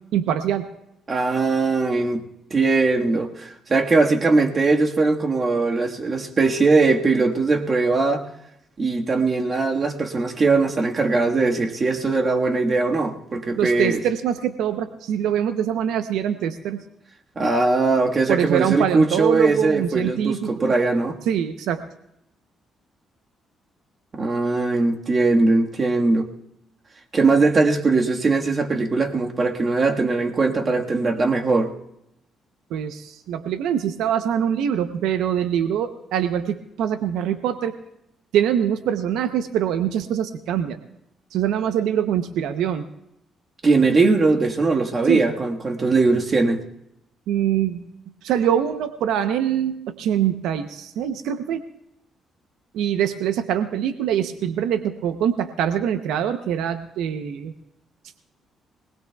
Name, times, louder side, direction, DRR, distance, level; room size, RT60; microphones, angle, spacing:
voice 1, 0.1-0.7 13.6-16.8 18.3-20.7 21.2-21.8 32.7-37.8 38.3-40.8 41.3-42.8 45.0-45.3 47.3-47.8 48.2-51.7 52.7-57.5, right 9 dB, 85° right, 9 dB, 0.8 m, -24 dB
voice 2, 1.1-2.2 2.5-8.2 8.8-14.0 17.3-21.2 24.1-26.3 27.1-31.7 43.6-46.6, right 3 dB, 40° right, 2 dB, 1.6 m, -20 dB
24.0 x 19.5 x 2.3 m, 0.81 s
cardioid pair, 90°, 0 cm